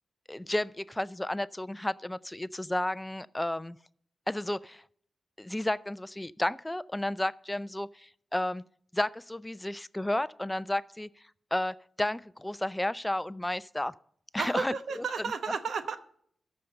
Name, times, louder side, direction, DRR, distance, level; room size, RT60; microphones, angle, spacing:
voice 1, 0.3-3.8 4.3-4.8 5.4-8.6 8.9-11.1 11.5-13.9 14.3-15.0, left 1 dB, 15° left, 18 dB, 0.4 m, -32 dB
voice 2, 14.4-16.0, right 5 dB, 75° right, 10 dB, 0.9 m, -32 dB
13.5 x 5.3 x 6.5 m, 0.64 s
supercardioid pair, 40°, 0 cm